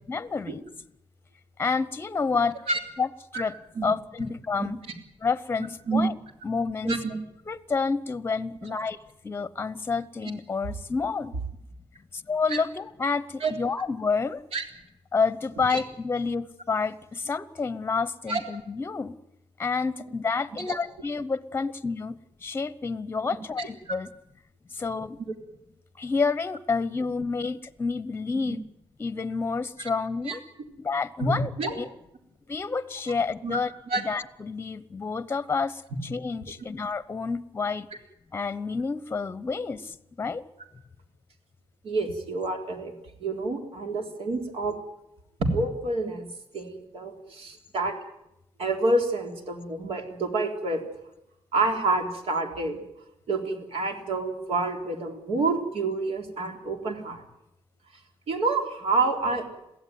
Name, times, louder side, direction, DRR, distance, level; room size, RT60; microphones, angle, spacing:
voice 1, 0.1-0.6 1.6-2.6 3.0-3.5 3.8-4.8 5.2-6.1 6.4-7.0 7.5-9.0 9.2-11.3 12.1-14.4 15.1-19.2 19.6-24.1 24.7-25.2 26.0-28.6 29.0-30.4 30.8-31.9 32.5-35.8 36.1-37.9 38.3-40.4, left 4 dB, 20° left, 15 dB, 0.9 m, -29 dB
voice 2, 6.8-7.2 8.6-8.7 12.5-12.6 13.4-13.5 14.5-14.6 15.7-15.8 18.3-18.4 20.7-20.8 23.6-24.0 28.5-28.6 30.3-30.4 31.2-31.7 33.4-34.0 41.8-42.9 43.2-44.7 45.4-46.3 46.5-48.0 48.6-50.8 51.5-52.8 53.3-57.2 58.3-59.5, right 3 dB, 70° right, 3 dB, 3.8 m, -28 dB
22.5 x 16.0 x 9.4 m, 0.84 s
wide cardioid pair, 150°, 10 cm